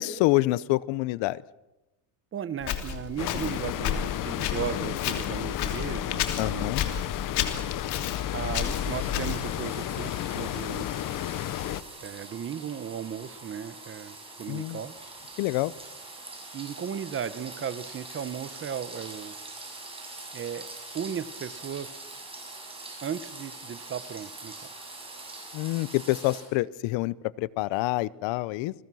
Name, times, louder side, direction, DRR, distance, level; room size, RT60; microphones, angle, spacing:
voice 1, 0.0-1.4 6.4-6.9 14.5-14.8 15.4-15.7 25.5-28.7, left 18 dB, 85° left, 20 dB, 0.9 m, -27 dB
voice 2, 2.3-6.8 8.3-10.9 12.0-14.9 16.5-19.4 20.3-20.7 20.9-21.9 23.0-24.7, right 8 dB, 30° right, 15 dB, 0.9 m, -36 dB
Walk footsteps, 2.6-9.6, left 9 dB, 60° left, 3.2 m, -32 dB
sound 1, 3.2-11.8, left 13 dB, 45° left, 0.9 m, -32 dB
sound 2, 8.5-26.5, right 2 dB, 10° right, 6.9 m, -44 dB
30.0 x 21.5 x 6.3 m, 0.98 s
cardioid pair, 160°, 44 cm